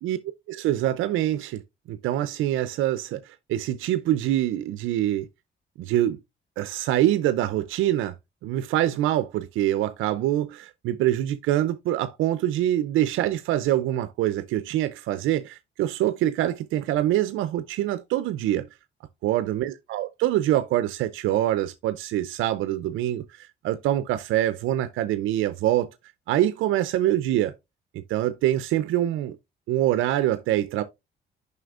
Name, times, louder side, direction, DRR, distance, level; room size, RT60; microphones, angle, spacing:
voice 1, 0.5-1.6 1.9-5.3 5.8-6.2 6.6-8.1 8.4-18.7 19.2-25.9 26.3-27.5 27.9-29.4 29.7-30.8, right 13 dB, 85° right, 0.5 m, -25 dB
7.6 x 5.5 x 2.4 m
cardioid pair, 90°, 20 cm